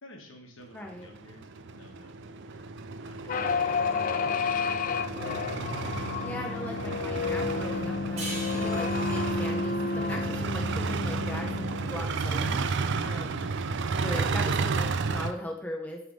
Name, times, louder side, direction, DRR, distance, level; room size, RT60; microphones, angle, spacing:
voice 1, 0.0-2.7 3.0-4.6 6.3-6.7, left 1 dB, 65° left, 2 dB, 1.3 m, -53 dB
voice 2, 0.7-1.1 6.2-13.5 14.0-16.0, left 1 dB, 10° left, 0 dB, 0.7 m, -39 dB
sound 1, 0.8-15.3, right 4 dB, 55° right, 0.4 m, -32 dB
sound 2, 3.3-12.0, left 5 dB, 40° left, 0.3 m, -31 dB
sound 3, 8.2-11.3, right 2 dB, 30° right, 1.9 m, -42 dB
9.2 x 3.4 x 5.3 m, 0.75 s
head